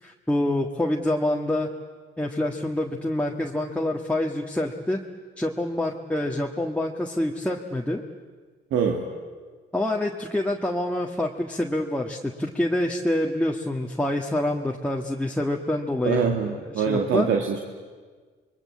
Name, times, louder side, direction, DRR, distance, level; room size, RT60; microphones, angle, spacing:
voice 1, 0.0-1.7 2.2-5.0 5.4-8.0 9.7-17.3, left 1 dB, 5° left, -1 dB, 1.7 m, -26 dB
voice 2, 8.7-9.1 16.0-17.6, right 6 dB, 80° right, 1 dB, 2.2 m, -24 dB
27.5 x 22.0 x 8.4 m, 1.5 s
cardioid pair, 90°, 20 cm